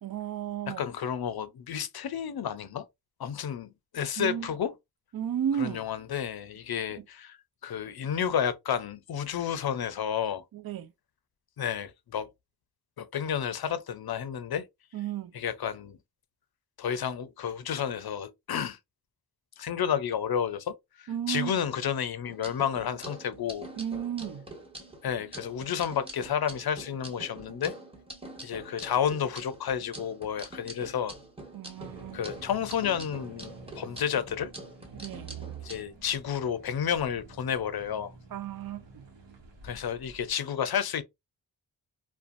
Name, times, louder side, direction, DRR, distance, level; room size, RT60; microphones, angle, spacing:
voice 1, 0.0-0.8 4.2-4.5 5.1-5.9 7.0-7.1 10.5-10.9 14.9-15.3 21.1-21.5 23.8-24.5 31.5-32.2 34.9-35.4 38.3-39.1, right 9 dB, 55° right, 0.5 m, -33 dB
voice 2, 0.7-2.8 3.2-4.7 5.6-7.4 7.6-10.4 11.6-12.3 13.0-14.7 15.3-16.0 16.8-18.8 19.6-23.7 25.0-27.7 28.4-31.1 32.1-34.5 35.6-38.1 39.6-41.0, left 8 dB, 60° left, 0.5 m, -31 dB
sound 1, 22.2-35.8, right 1 dB, 15° right, 1.2 m, -45 dB
sound 2, 31.7-40.3, right 5 dB, 80° right, 0.9 m, -48 dB
2.5 x 2.2 x 2.4 m
cardioid pair, 45°, 43 cm